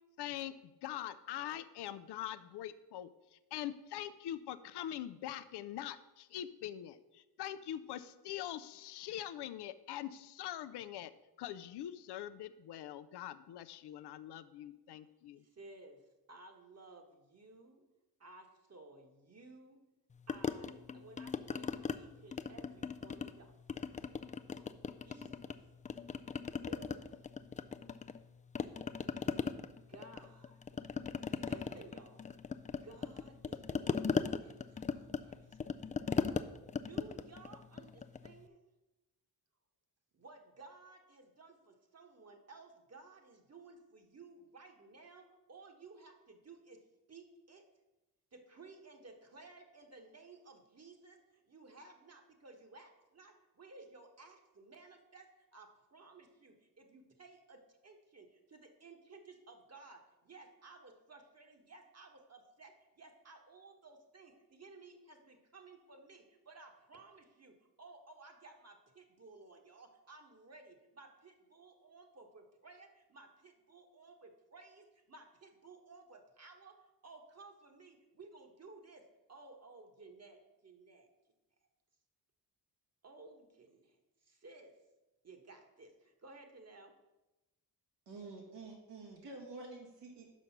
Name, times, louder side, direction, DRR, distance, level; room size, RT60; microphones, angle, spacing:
voice 1, 0.2-0.5 0.8-3.1 3.5-11.1 11.4-15.4, left 12 dB, 70° left, 13 dB, 0.5 m, -43 dB
voice 2, 15.4-17.8 18.2-19.8 20.3-24.2 24.6-25.5 26.7-27.3 29.7-30.6 31.3-32.3 32.6-35.6 36.8-38.7 40.1-46.8 47.1-47.6 48.3-81.1 83.0-84.8 85.2-86.9, right 3 dB, 35° right, 4 dB, 1.3 m, -57 dB
sound 1, 20.3-22.0 22.3-23.4 23.7-25.6 25.9-28.3 28.5-38.4, left 5 dB, 20° left, 0.3 m, -38 dB
voice 3, 88.1-90.3, right 3 dB, 80° right, -1 dB, 1.9 m, -49 dB
6.2 x 5.3 x 5.8 m, 1.0 s
cardioid pair, 60°, 42 cm